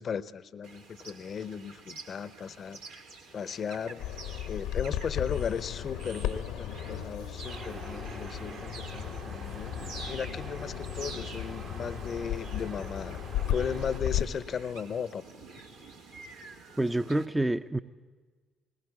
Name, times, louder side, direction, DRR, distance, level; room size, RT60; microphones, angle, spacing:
voice 1, 0.0-2.8 3.3-4.0 4.5-9.7 10.1-13.2 13.5-15.2, left 7 dB, 50° left, 16 dB, 0.8 m, -36 dB
sound 1, 0.6-17.3, right 3 dB, 80° right, 2.1 m, -48 dB
Bird vocalization bird call bird song, 4.0-14.2, left 10 dB, 75° left, 1.0 m, -35 dB
sound 2, 7.4-14.0, right 4 dB, 55° right, 1.9 m, -46 dB
voice 2, 16.8-17.8, right 1 dB, 15° right, 9 dB, 0.7 m, -27 dB
20.0 x 19.5 x 8.2 m, 1.4 s
hypercardioid pair, 50°, 0 cm